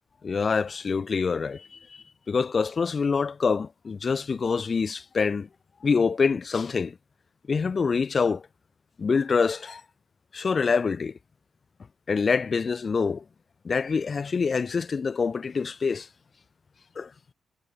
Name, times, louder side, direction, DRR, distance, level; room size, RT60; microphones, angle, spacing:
voice 1, 0.2-1.8 2.3-5.5 5.8-7.0 7.5-8.4 9.0-9.8 10.3-11.1 12.1-13.2 13.6-16.1 17.0-17.1, left 5 dB, 50° left, 0.3 m, -25 dB
hypercardioid pair, 40°, 0 cm